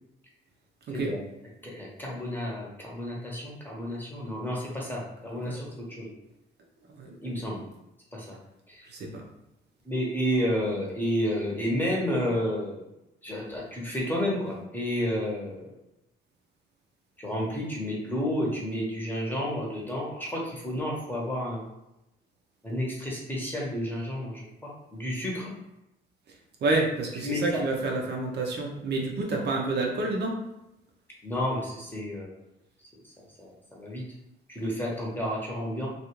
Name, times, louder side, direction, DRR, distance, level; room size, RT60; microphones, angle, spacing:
voice 1, 1.6-6.1 7.0-7.6 8.1-8.4 8.7-8.9 9.8-12.8 13.2-15.7 17.2-21.6 22.6-25.4 27.2-27.6 31.2-32.4 33.0-33.1 33.4-34.0 34.5-35.9, equal, 10° left, -4 dB, 0.9 m, -31 dB
voice 2, 8.8-9.2 26.6-30.4, right 2 dB, 60° right, 0 dB, 0.6 m, -29 dB
2.4 x 2.4 x 3.0 m, 0.89 s
cardioid pair, 90°, 20 cm